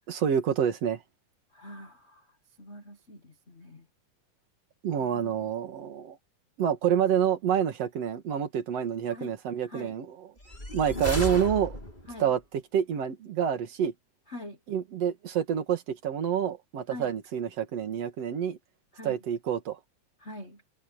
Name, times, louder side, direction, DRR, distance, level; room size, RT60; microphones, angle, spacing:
voice 1, 0.1-1.0 4.8-6.2 6.6-10.3 10.7-11.8 12.2-13.9 14.7-18.6 19.0-19.8, right 8 dB, 55° right, 2.7 m, -28 dB
voice 2, 1.5-2.3 2.6-3.8 5.0-5.5 9.1-9.4 9.7-9.9 12.1-12.3 14.3-14.6 16.9-17.1 18.9-19.2 20.2-20.6, left 1 dB, 50° left, 0.7 m, -43 dB
sound 1, 10.4-12.2, left 1 dB, 15° left, 6.8 m, -34 dB
omnidirectional pair, 3.7 m